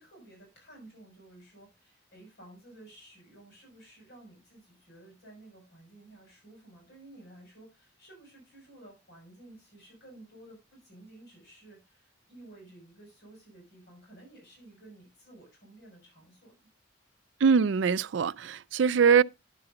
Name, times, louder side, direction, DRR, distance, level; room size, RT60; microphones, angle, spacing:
voice 1, 0.0-16.5, right 1 dB, 60° left, 6.4 m, -53 dB
voice 2, 17.4-19.2, right 6 dB, 70° right, 0.4 m, -22 dB
10.5 x 6.9 x 3.8 m
head